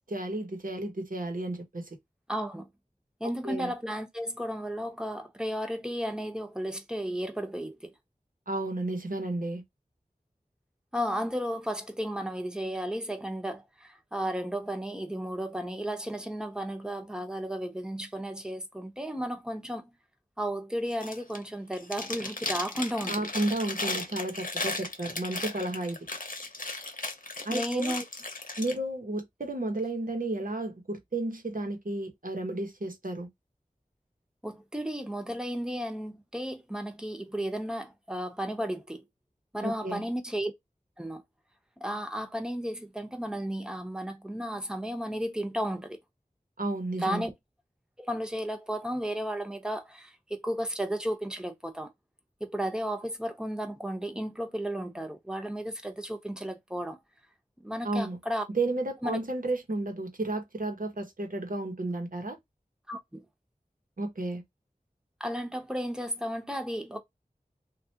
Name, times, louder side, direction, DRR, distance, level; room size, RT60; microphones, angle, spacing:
voice 1, 0.1-1.9 3.2-3.7 8.5-9.6 23.1-26.0 27.4-28.0 28.6-33.3 39.6-40.1 46.6-47.2 57.8-58.2 58.5-62.4 64.0-64.4, right 2 dB, 70° right, 1.0 m, -32 dB
voice 2, 2.3-2.7 3.2-7.9 10.9-19.9 20.4-23.1 27.5-28.0 34.4-39.0 39.5-40.5 41.0-41.2 41.8-46.0 47.0-47.3 48.0-51.9 52.4-57.0 57.6-58.4 59.0-59.2 62.9-63.2 65.2-67.0, equal, 5° right, 0.8 m, -33 dB
Chewing mastication, 20.9-21.4 21.7-28.7, left 2 dB, 65° left, 0.8 m, -36 dB
3.2 x 2.4 x 2.8 m
wide cardioid pair, 40°, 15 cm